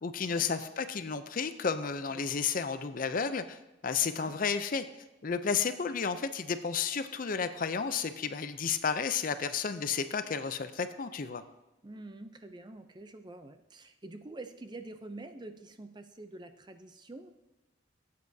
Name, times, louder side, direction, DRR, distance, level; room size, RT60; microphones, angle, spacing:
voice 1, 0.0-4.8 5.2-11.4, left 6 dB, 40° left, 11 dB, 0.5 m, -32 dB
voice 2, 11.8-17.3, right 2 dB, 20° right, 8 dB, 0.5 m, -46 dB
16.5 x 8.4 x 2.7 m, 1.0 s
head